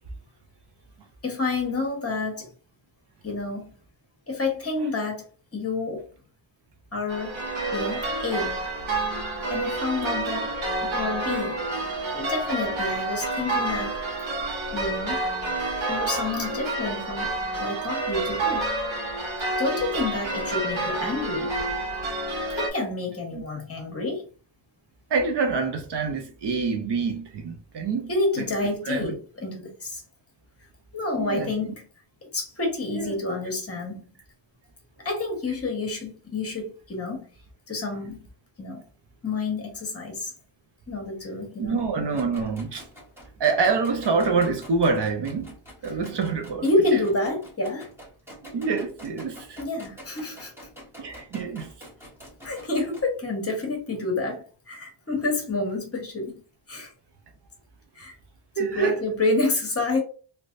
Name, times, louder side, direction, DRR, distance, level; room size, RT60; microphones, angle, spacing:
voice 1, 1.2-2.5 3.2-3.7 4.3-5.2 5.5-6.0 6.9-7.4 7.7-8.6 9.5-10.5 10.8-11.6 12.1-14.0 14.7-15.2 15.9-18.7 19.6-21.5 22.5-24.2 28.1-29.2 29.4-30.0 30.9-31.8 32.3-34.1 35.0-37.2 37.7-38.3 38.6-38.8 39.2-40.3 40.9-41.8 46.6-47.9 49.6-50.5 52.4-56.4 56.7-56.9 57.9-58.1 58.5-60.0, left 3 dB, 30° left, 1.3 m, -28 dB
sound 1, 7.1-22.7, right 2 dB, 75° right, 1.4 m, -29 dB
voice 2, 25.1-28.1 28.4-28.5 28.8-29.1 31.2-31.7 32.9-33.2 41.6-42.9 43.4-45.5 45.8-46.6 48.5-49.6 51.0-51.7 58.6-59.0, right 4 dB, 60° right, 0.7 m, -26 dB
sound 2, 42.1-53.1, equal, 5° right, 1.4 m, -47 dB
3.2 x 3.0 x 2.6 m
wide cardioid pair, 145°, 47 cm